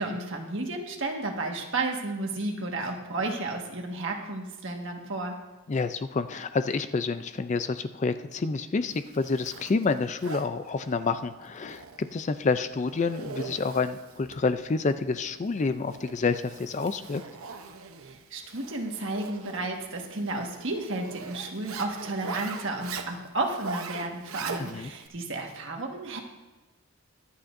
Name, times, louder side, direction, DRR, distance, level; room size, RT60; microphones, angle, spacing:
voice 1, 0.0-5.4 18.0-26.2, right 2 dB, 60° right, 1 dB, 1.6 m, -32 dB
voice 2, 5.7-17.2 24.6-24.9, left 4 dB, 35° left, 11 dB, 0.4 m, -28 dB
Zipper (clothing), 8.9-25.1, right 5 dB, 75° right, 0.8 m, -42 dB
23.5 x 8.5 x 2.6 m, 1.2 s
head